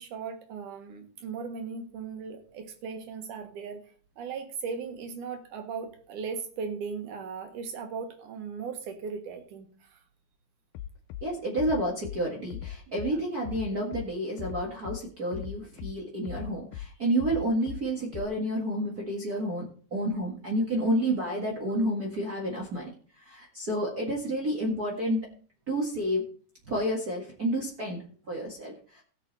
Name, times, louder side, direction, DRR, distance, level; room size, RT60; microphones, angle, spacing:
voice 1, 0.0-3.8 4.2-10.0 12.9-13.2, right 5 dB, 90° right, 6 dB, 3.0 m, -38 dB
Bass drum, 10.7-11.2 11.6-12.2 12.5-13.1 13.4-14.1 14.4-15.0 15.3-15.9 16.3-16.9 17.2-17.8 18.1-18.2, left 11 dB, 90° left, 2.1 m, -38 dB
voice 2, 11.2-22.9 23.2-25.3 25.7-26.3 26.7-29.0, right 1 dB, 35° right, -3 dB, 1.9 m, -30 dB
17.5 x 6.2 x 4.0 m, 0.44 s
omnidirectional pair, 3.5 m